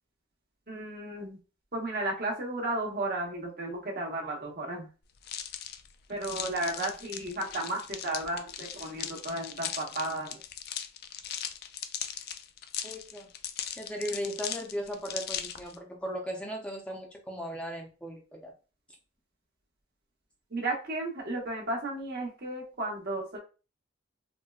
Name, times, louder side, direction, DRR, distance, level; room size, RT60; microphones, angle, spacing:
voice 1, 0.7-1.4 1.7-4.9 6.1-10.4 20.5-23.4, right 2 dB, 55° right, -1 dB, 1.0 m, -34 dB
sound 1, 5.2-15.8, left 9 dB, 55° left, 0.3 m, -39 dB
voice 2, 12.8-13.3 13.8-18.5, equal, 5° left, 0 dB, 0.6 m, -37 dB
4.2 x 2.1 x 2.3 m, 0.34 s
head